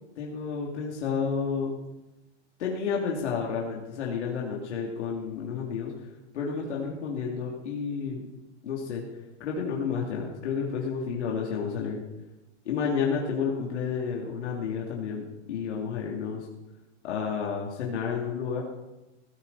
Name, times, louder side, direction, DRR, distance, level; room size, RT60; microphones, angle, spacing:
voice 1, 0.2-1.7 2.6-6.1 6.3-8.2 8.6-9.0 9.4-12.0 12.6-16.5 17.0-18.6, left 6 dB, 75° left, -2 dB, 3.0 m, -31 dB
17.0 x 13.5 x 4.2 m, 1.0 s
supercardioid pair, 150°, 35 cm